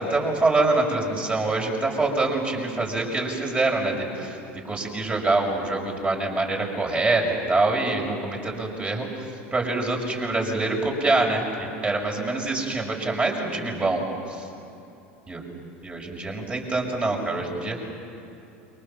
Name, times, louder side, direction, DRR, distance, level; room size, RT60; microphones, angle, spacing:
voice 1, 0.0-4.4 4.6-9.1 9.5-14.0 14.3-14.4 15.3-15.4 15.8-17.8, right 2 dB, 20° right, 1 dB, 6.6 m, -25 dB
28.5 x 24.5 x 7.4 m, 2.8 s
hypercardioid pair, 80°, 7 cm